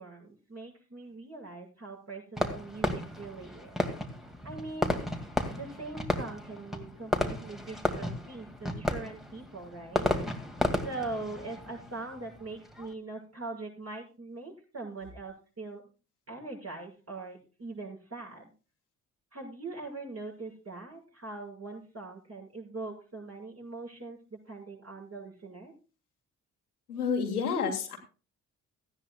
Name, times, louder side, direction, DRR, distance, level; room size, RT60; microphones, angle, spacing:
voice 1, 0.0-3.8 4.4-5.0 5.5-10.1 10.3-10.5 10.8-15.8 16.3-18.4 19.3-25.7, right 3 dB, 35° right, -1 dB, 6.7 m, -42 dB
Fireworks, 2.4-12.9, left 1 dB, ahead, 2.2 m, -33 dB
voice 2, 26.9-28.0, left 6 dB, 85° left, 3 dB, 1.9 m, -29 dB
17.5 x 14.0 x 2.3 m, 0.35 s
figure-of-eight pair, 45°, 44 cm